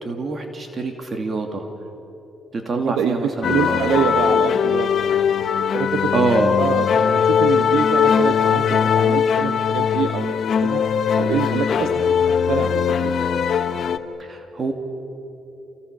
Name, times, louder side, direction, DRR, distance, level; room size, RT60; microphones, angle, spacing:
voice 1, 0.0-1.7 2.5-4.1 6.1-6.6 14.2-14.7, right 3 dB, 40° right, 4 dB, 2.6 m, -25 dB
voice 2, 2.6-4.9 5.7-6.1 6.6-10.3 10.6-10.8 11.2-12.0 12.5-13.2, right 7 dB, 85° right, 6 dB, 1.4 m, -25 dB
sound 1, 3.4-14.0, left 7 dB, 60° left, 1.4 m, -20 dB
28.5 x 28.5 x 6.9 m, 3.0 s
cardioid pair, 90°, 0 cm